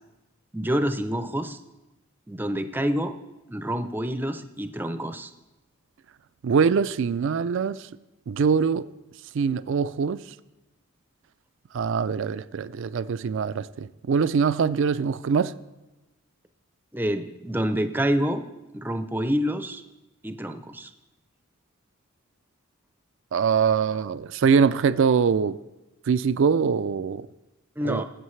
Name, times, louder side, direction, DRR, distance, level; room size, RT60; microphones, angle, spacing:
voice 1, 0.5-1.6 2.3-3.2 3.5-5.3 16.9-18.4 18.7-19.8 20.2-20.9 27.8-28.0, equal, 10° right, 0.5 m, -27 dB
voice 2, 6.4-7.9 8.3-8.9 9.3-10.2 11.7-15.5 23.3-25.6 26.1-27.3 27.8-28.0, right 6 dB, 60° right, 0.4 m, -23 dB
20.0 x 8.0 x 3.2 m
head